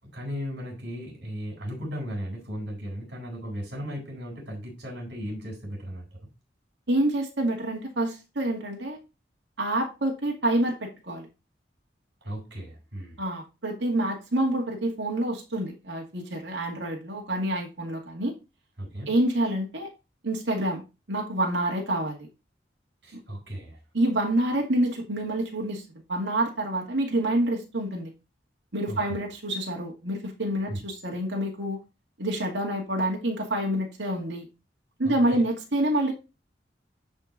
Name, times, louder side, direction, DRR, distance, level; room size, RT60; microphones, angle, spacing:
voice 1, 0.0-6.1 12.2-13.2 18.8-19.1 23.0-23.8 28.9-29.0 30.7-30.8 35.0-35.4, equal, 75° right, 4.1 m, -36 dB
voice 2, 6.9-9.0 9.6-11.3 13.2-18.3 19.1-19.9 20.2-20.8 21.1-22.3 23.1-23.2 23.9-25.8 26.1-28.1 28.7-31.8 32.2-34.5 35.0-36.1, right 1 dB, 90° right, 2.1 m, -27 dB
10.0 x 4.5 x 3.9 m
head